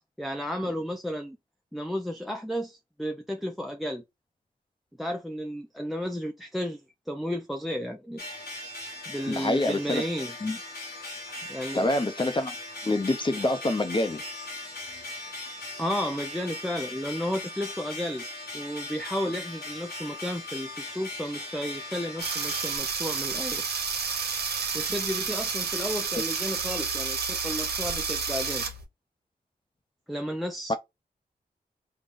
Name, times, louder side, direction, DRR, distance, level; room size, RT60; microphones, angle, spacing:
voice 1, 0.2-1.4 1.7-4.0 5.0-8.2 9.1-10.4 11.5-11.9 15.8-18.3 18.5-23.6 24.7-28.7 30.1-30.7, equal, ahead, 0.5 m, -33 dB
sound 1, 8.2-22.8, left 2 dB, 85° left, 1.3 m, -39 dB
voice 2, 9.3-10.0 10.4-10.6 11.7-12.5 12.8-14.2 30.7-30.8, left 2 dB, 30° left, 0.7 m, -26 dB
sound 2, 22.2-28.8, right 5 dB, 90° right, 0.8 m, -30 dB
3.8 x 2.2 x 3.5 m
cardioid pair, 60°, 16 cm